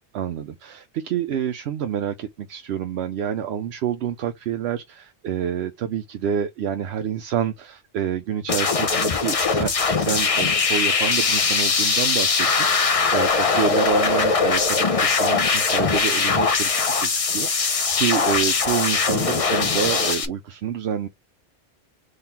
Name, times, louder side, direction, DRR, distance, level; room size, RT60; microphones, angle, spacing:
voice 1, 0.1-16.7 17.0-21.1, right 8 dB, 80° right, 0.8 m, -28 dB
sound 1, 8.5-20.3, left 4 dB, 35° left, 0.7 m, -21 dB
3.7 x 3.3 x 4.2 m
omnidirectional pair, 1.1 m